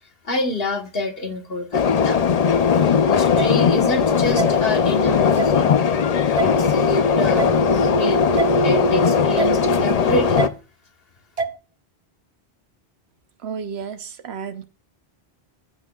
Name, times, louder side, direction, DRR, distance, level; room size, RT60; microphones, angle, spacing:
voice 1, 0.2-2.2 2.8-5.7 6.4-7.6 7.9-8.2 8.6-10.4, left 2 dB, 65° left, 4 dB, 1.6 m, -27 dB
sound 1, 1.7-10.5, left 5 dB, 50° left, 0.5 m, -18 dB
sound 2, 3.4-3.5 4.4-4.5 5.4-5.5 6.4-6.5 7.4-7.5 8.4-8.5 9.4-9.5 10.4-10.5 11.4-11.5, right 5 dB, 45° right, 0.5 m, -24 dB
voice 2, 13.4-14.6, right 6 dB, 90° right, 9 dB, 1.1 m, -32 dB
14.0 x 5.8 x 2.3 m, 0.33 s
omnidirectional pair, 1.1 m